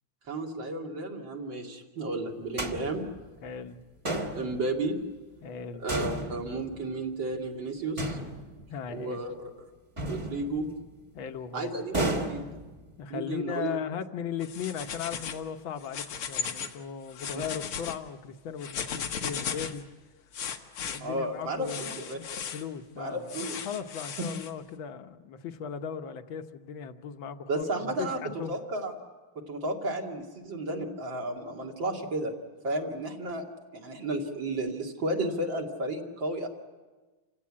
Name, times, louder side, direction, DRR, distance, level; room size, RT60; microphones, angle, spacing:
voice 1, 0.3-3.0 4.3-4.9 5.8-8.2 8.9-9.5 10.1-10.7 11.5-12.4 13.1-13.7 21.0-22.2 23.0-23.6 27.5-28.9 29.5-32.3 32.6-33.4 33.7-36.5, right 2 dB, 65° right, 1 dB, 3.0 m, -33 dB
sound 1, 2.6-3.5 4.0-4.9 5.9-7.0 8.0-8.9 10.0-11.0 11.9-13.0, right 1 dB, 20° right, 1.1 m, -34 dB
voice 2, 3.4-3.8 5.4-5.9 8.7-9.2 11.1-11.7 13.0-19.8 20.8-28.6, left 7 dB, 70° left, 8 dB, 1.8 m, -38 dB
sound 2, 14.4-15.4 15.8-16.8 17.1-18.0 18.6-19.8 20.3-21.0 21.7-22.6 23.3-24.5, left 7 dB, 90° left, 2.2 m, -36 dB
28.0 x 16.5 x 8.6 m, 1.3 s
omnidirectional pair, 2.3 m